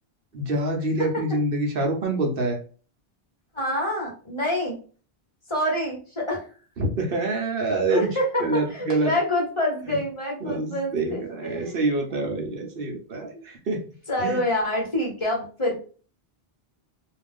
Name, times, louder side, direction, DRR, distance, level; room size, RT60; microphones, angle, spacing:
voice 1, 0.3-2.6 6.8-8.1 8.4-9.1 10.4-13.8 14.2-14.4, right 2 dB, 65° right, 2 dB, 0.9 m, -26 dB
voice 2, 3.5-4.7 5.5-6.5 7.9-11.9 13.3-13.4 14.1-15.8, left 1 dB, 30° left, -2 dB, 1.0 m, -27 dB
2.5 x 2.3 x 3.4 m, 0.39 s
omnidirectional pair, 1.0 m